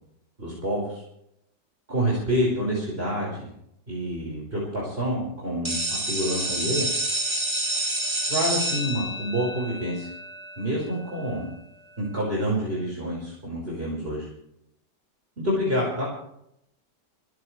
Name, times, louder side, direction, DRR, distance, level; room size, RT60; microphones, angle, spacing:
voice 1, 0.4-1.0 1.9-3.4 3.9-6.9 8.3-10.1 10.6-11.5 12.0-14.3 15.4-16.1, equal, 30° right, -3 dB, 5.5 m, -27 dB
sound 1, 5.6-11.3, right 1 dB, 15° right, 2.7 m, -29 dB
28.5 x 12.5 x 3.3 m, 0.74 s
omnidirectional pair, 1.9 m